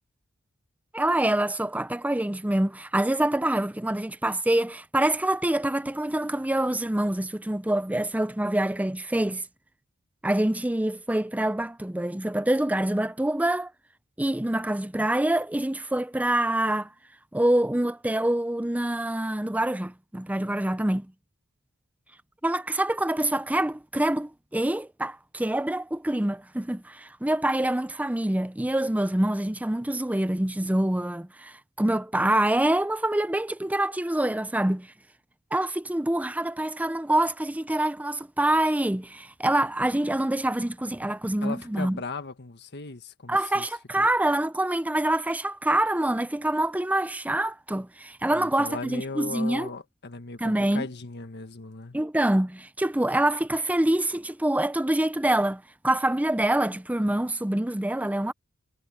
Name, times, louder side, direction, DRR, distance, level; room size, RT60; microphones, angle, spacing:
voice 1, 0.9-9.4 10.2-13.7 14.2-16.9 17.3-21.1 22.4-34.9 35.5-42.0 43.3-49.7 50.4-50.9 51.9-58.3, right 1 dB, 5° right, 0.5 m, -26 dB
voice 2, 41.4-43.6 44.0-44.1 48.3-52.0, left 3 dB, 50° left, 1.6 m, -37 dB
head